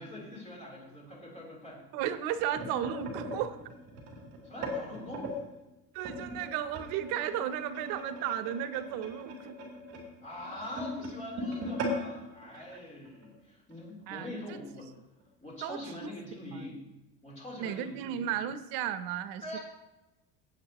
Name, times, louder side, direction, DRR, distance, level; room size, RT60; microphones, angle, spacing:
voice 1, 0.0-1.8 4.4-5.3 10.2-15.0 15.4-16.8 17.2-18.3 19.4-19.6, left 1 dB, 20° left, -4 dB, 3.4 m, -43 dB
voice 2, 1.9-3.6 5.9-9.6 12.5-12.6 14.1-14.6 15.6-16.1 16.5-16.6 17.6-19.6, right 10 dB, 85° right, 11 dB, 0.7 m, -34 dB
sound 1, 2.2-5.4 6.0-13.3 13.7-13.9 14.2-14.5 15.2-15.3, equal, 50° right, 2.7 m, -39 dB
17.0 x 8.1 x 2.9 m, 0.97 s
cardioid pair, 170°, 34 cm